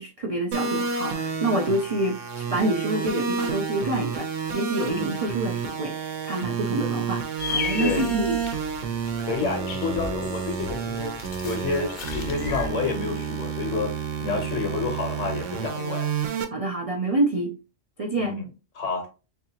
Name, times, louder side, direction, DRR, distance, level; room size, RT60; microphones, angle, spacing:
voice 1, 0.0-4.3 4.5-8.4 16.5-17.6 18.0-18.4, right 2 dB, 60° right, 0.3 m, -27 dB
sound 1, 0.5-16.4, right 6 dB, 85° right, 1.0 m, -30 dB
sound 2, 7.4-12.7, left 6 dB, 55° left, 0.8 m, -35 dB
voice 2, 7.8-8.1 9.2-13.9 14.2-16.1 18.2-18.4 18.7-19.1, left 4 dB, 85° left, 1.6 m, -29 dB
3.6 x 3.2 x 2.8 m
omnidirectional pair, 1.3 m